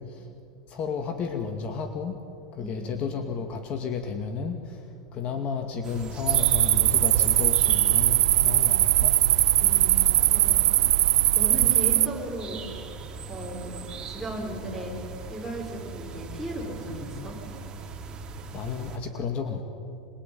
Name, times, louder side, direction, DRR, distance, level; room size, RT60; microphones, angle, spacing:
voice 1, 0.7-2.2 2.5-9.2 10.7-10.8 11.7-11.8 18.5-19.6, left 5 dB, 40° left, 5 dB, 2.4 m, -32 dB
voice 2, 2.6-2.9 9.6-10.9 11.3-12.7 13.3-15.0 15.3-17.4, right 1 dB, ahead, -2 dB, 6.9 m, -36 dB
sound 1, 5.8-19.0, right 3 dB, 25° right, 4.0 m, -40 dB
sound 2, 6.3-12.1, right 14 dB, 80° right, 0.6 m, -20 dB
26.5 x 22.5 x 9.6 m, 2.6 s
supercardioid pair, 120°, 3 cm